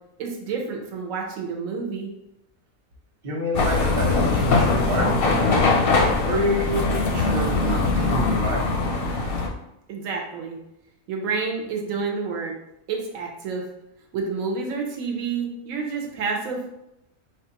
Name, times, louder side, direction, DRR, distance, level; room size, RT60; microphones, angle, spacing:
voice 1, 0.2-2.1 9.9-10.6 11.1-12.6 12.9-13.6 14.1-16.6, right 5 dB, 75° right, 1 dB, 1.0 m, -29 dB
voice 2, 3.2-5.1 6.2-8.8, equal, 35° right, -3 dB, 0.6 m, -28 dB
sound 1, 3.5-9.5, left 3 dB, 60° left, 0.6 m, -21 dB
4.2 x 2.3 x 2.8 m, 0.84 s
omnidirectional pair, 1.5 m